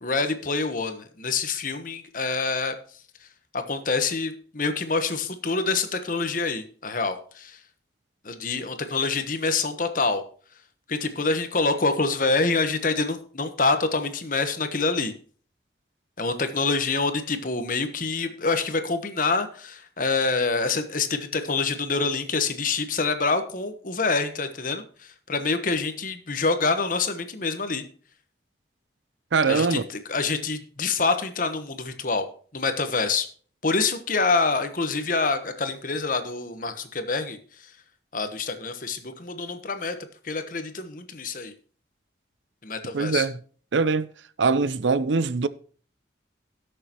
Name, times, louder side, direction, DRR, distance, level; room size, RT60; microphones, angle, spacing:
voice 1, 0.0-2.7 3.5-7.6 8.2-10.2 10.9-15.1 16.2-24.8 25.3-27.8 29.5-32.3 32.5-33.3 33.6-37.4 38.1-40.0 40.2-41.5 42.6-43.2, left 4 dB, 45° left, 1.1 m, -26 dB
voice 2, 29.3-29.8 42.9-43.4 43.7-44.1 44.4-45.5, right 4 dB, 90° right, 0.6 m, -22 dB
17.5 x 6.6 x 3.0 m
head